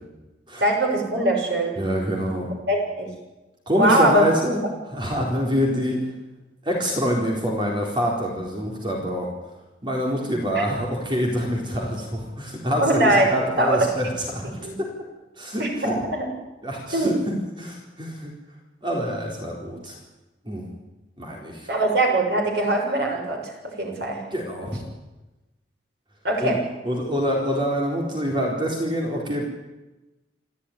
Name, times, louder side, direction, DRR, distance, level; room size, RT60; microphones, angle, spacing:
voice 1, 0.6-1.8 2.7-3.1 3.7-4.3 10.5-10.6 12.8-13.2 13.6-13.8 14.6-14.8 15.6-16.3 16.9-17.1 21.7-23.4 23.8-24.2 26.2-26.6, right 1 dB, 65° right, 1 dB, 6.5 m, -21 dB
voice 2, 1.8-2.5 3.7-4.6 4.9-6.0 6.7-9.3 9.8-14.5 14.8-14.9 15.4-15.9 16.6-17.1 17.6-18.3 18.8-19.9 20.5-20.7 21.2-21.7 24.3-24.8 26.4-26.6 26.8-29.4, equal, 25° right, -1 dB, 4.1 m, -25 dB
27.5 x 13.0 x 10.0 m, 1.1 s
head